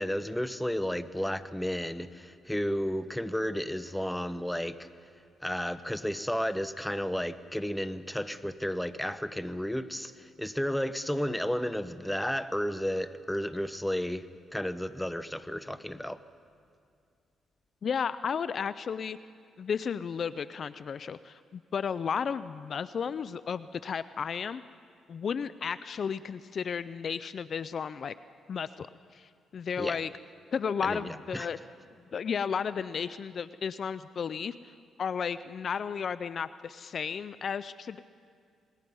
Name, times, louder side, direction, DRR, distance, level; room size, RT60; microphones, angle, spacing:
voice 1, 0.0-4.9 5.4-16.2 29.8-30.0 30.8-31.6, equal, 5° left, 13 dB, 0.9 m, -32 dB
voice 2, 17.8-19.2 19.6-24.6 25.1-28.1 28.5-28.9 29.1-30.1 30.5-31.6 32.1-38.0, left 6 dB, 55° left, 15 dB, 0.4 m, -33 dB
27.0 x 20.5 x 5.4 m, 2.2 s
cardioid pair, 75°, 0 cm